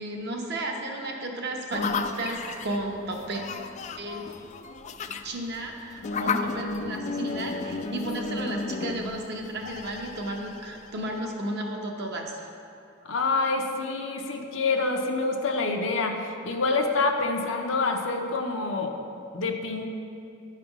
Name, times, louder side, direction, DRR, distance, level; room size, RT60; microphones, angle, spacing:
voice 1, 0.0-3.4 4.0-4.2 5.1-12.5, right 1 dB, 55° right, 1 dB, 0.9 m, -33 dB
sound 1, 1.7-11.3, left 4 dB, 35° left, 0.3 m, -33 dB
voice 2, 13.0-18.9 19.3-19.9, left 3 dB, 75° left, 3 dB, 0.7 m, -27 dB
9.9 x 3.4 x 5.9 m, 2.6 s
head